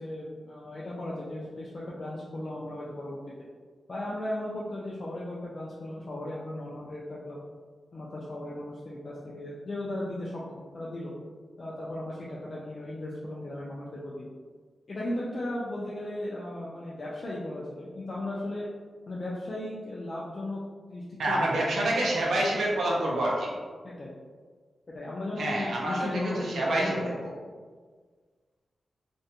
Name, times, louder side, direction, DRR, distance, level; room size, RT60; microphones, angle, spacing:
voice 1, 0.0-3.2 3.9-7.4 7.9-11.1 11.6-14.2 14.9-18.7 19.1-20.6 20.9-21.6 23.8-24.1 24.9-27.1, left 1 dB, 45° left, -6 dB, 0.4 m, -36 dB
voice 2, 21.2-23.5 25.4-27.1, right 1 dB, 85° right, -3 dB, 0.6 m, -27 dB
2.5 x 2.1 x 2.7 m, 1.5 s
wide cardioid pair, 90°, 0 cm